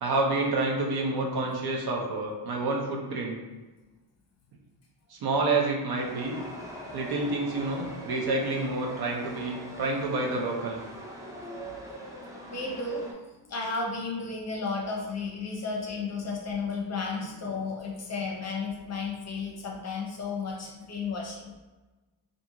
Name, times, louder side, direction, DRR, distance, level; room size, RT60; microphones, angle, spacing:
voice 1, 0.0-3.4 5.1-6.4 6.9-10.8, right 2 dB, 60° right, -1 dB, 0.6 m, -28 dB
Chatter / Subway metro underground, 6.0-13.1, equal, 10° right, 0.3 m, -42 dB
voice 2, 12.5-13.1 13.5-21.5, left 4 dB, 40° left, -1 dB, 0.6 m, -33 dB
2.5 x 2.4 x 2.8 m, 1.2 s
cardioid pair, 125°, 43 cm